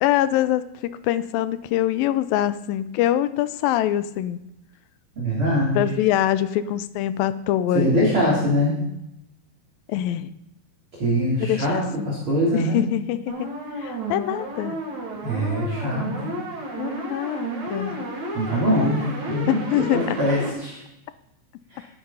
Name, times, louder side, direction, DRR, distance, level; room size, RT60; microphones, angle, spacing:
voice 1, 0.0-4.4 5.7-8.5 8.8-9.0 9.9-10.3 11.4-12.1 12.5-13.5 13.8-14.8 16.8-18.1 19.5-20.2, left 12 dB, 80° left, 14 dB, 2.3 m, -24 dB
voice 2, 5.2-5.8 7.7-8.7 11.0-11.8 12.1-12.8 15.2-16.3 18.3-19.0 19.3-19.6 19.9-20.8, equal, 35° right, -5 dB, 3.6 m, -22 dB
sound 1, 13.3-20.5, right 1 dB, 55° right, 4.7 m, -32 dB
12.5 x 10.5 x 5.6 m, 0.83 s
omnidirectional pair, 4.2 m